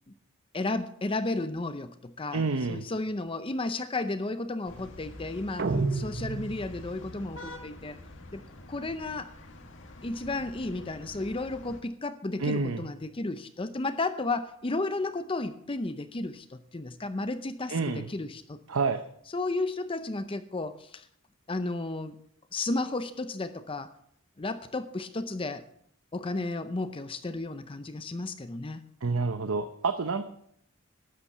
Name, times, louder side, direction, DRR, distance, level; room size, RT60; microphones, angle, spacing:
voice 1, 0.5-8.0 8.3-9.3 10.0-18.6 19.3-21.1 21.5-22.2 22.5-23.9 24.4-25.6 26.1-28.8, left 2 dB, 25° left, 10 dB, 0.6 m, -33 dB
voice 2, 2.3-2.9 12.4-12.9 17.7-18.1 18.7-19.0 29.0-30.3, right 4 dB, 90° right, 9 dB, 0.8 m, -28 dB
sound 1, 4.6-11.8, left 1 dB, 65° left, 1.9 m, -46 dB
sound 2, 5.6-7.0, right 3 dB, 55° right, 0.8 m, -30 dB
12.5 x 8.8 x 6.6 m, 0.69 s
head